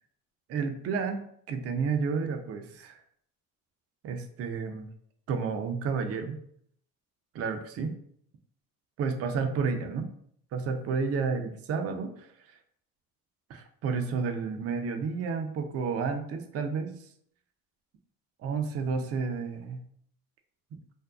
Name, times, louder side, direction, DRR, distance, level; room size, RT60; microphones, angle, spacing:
voice 1, 0.5-3.0 4.0-4.9 5.3-6.4 7.3-7.9 9.0-10.1 10.5-12.3 13.5-17.0 18.4-19.8, right 5 dB, 35° right, 5 dB, 0.4 m, -31 dB
2.5 x 2.2 x 2.3 m, 0.65 s
hypercardioid pair, 65°, 43 cm